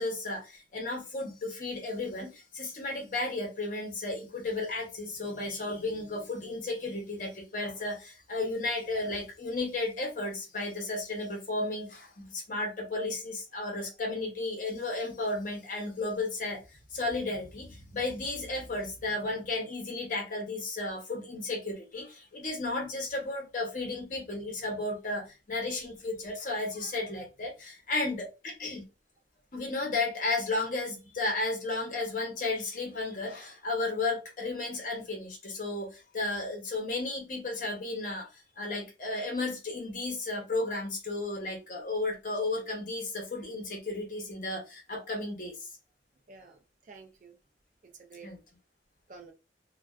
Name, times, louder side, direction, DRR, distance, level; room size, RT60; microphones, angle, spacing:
voice 1, 0.0-16.6 16.9-28.8 29.5-38.3 38.6-45.7 48.2-48.4, left 2 dB, 45° left, 0.8 m, -33 dB
voice 2, 46.3-47.4 48.0-48.3 49.1-49.3, right 4 dB, 45° right, 0.4 m, -50 dB
2.4 x 2.3 x 2.2 m
head